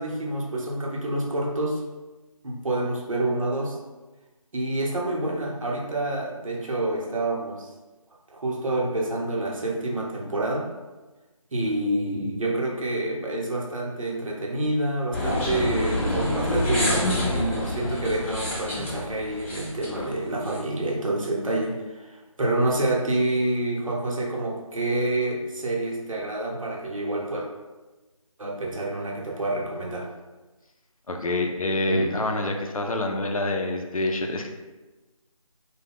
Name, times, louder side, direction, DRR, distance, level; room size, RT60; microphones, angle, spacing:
voice 1, 0.0-1.8 2.4-3.8 4.5-7.7 8.3-10.7 11.5-27.5 28.4-30.1 31.9-32.0, right 2 dB, 65° right, -2 dB, 0.8 m, -28 dB
sound 1, 15.1-20.6, left 1 dB, 20° left, 0.9 m, -27 dB
voice 2, 31.1-34.5, left 2 dB, 75° left, 3 dB, 0.5 m, -27 dB
2.4 x 2.2 x 3.4 m, 1.2 s
figure-of-eight pair, 165°, 18 cm